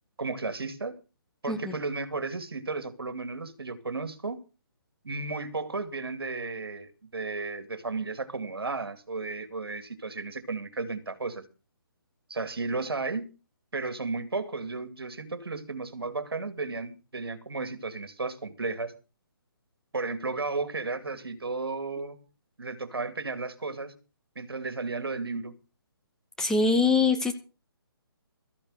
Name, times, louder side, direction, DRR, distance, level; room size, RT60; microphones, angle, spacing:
voice 1, 0.2-1.0 1.4-4.4 5.0-11.4 12.3-13.3 13.7-18.9 19.9-22.2 22.6-23.9 24.4-25.6, right 3 dB, 75° right, 2.4 m, -34 dB
voice 2, 26.4-27.3, left 4 dB, 5° left, 0.8 m, -23 dB
14.0 x 8.7 x 6.3 m
figure-of-eight pair, 145°, 13 cm